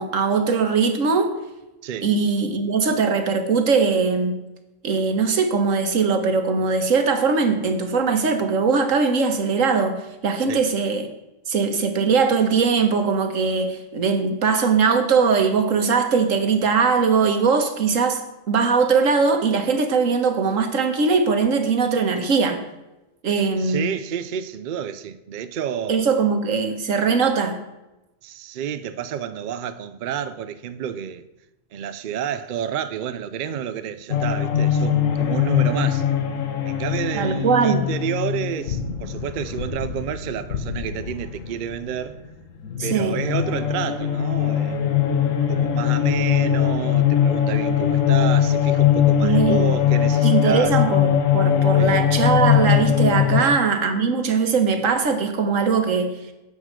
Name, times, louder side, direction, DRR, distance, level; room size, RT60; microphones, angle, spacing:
voice 1, 0.0-1.3 2.0-4.4 4.8-11.1 11.5-22.6 23.2-23.9 25.9-27.6 37.1-37.9 42.8-43.2 49.2-49.7 50.2-56.2, right 5 dB, 90° right, 1.6 m, -20 dB
voice 2, 23.4-26.1 28.2-31.3 31.7-36.1 36.7-42.2 42.8-44.9 45.5-50.8 51.8-52.0 53.4-53.6, right 9 dB, 55° right, 0.6 m, -30 dB
sound 1, 34.1-42.3 42.6-53.5, left 9 dB, 85° left, 1.3 m, -21 dB
9.5 x 7.0 x 6.6 m
omnidirectional pair, 1.3 m